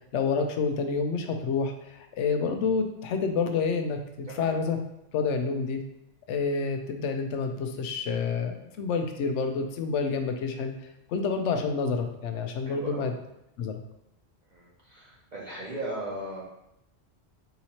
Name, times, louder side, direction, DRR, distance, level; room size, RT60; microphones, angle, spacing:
voice 1, 0.1-4.8 5.1-5.8 6.3-10.7 11.1-13.1 13.6-13.7, left 5 dB, 85° left, 5 dB, 0.9 m, -28 dB
voice 2, 12.6-13.2 14.5-16.4, right 1 dB, 45° right, -6 dB, 1.1 m, -38 dB
3.9 x 2.9 x 4.3 m, 0.83 s
omnidirectional pair, 1.2 m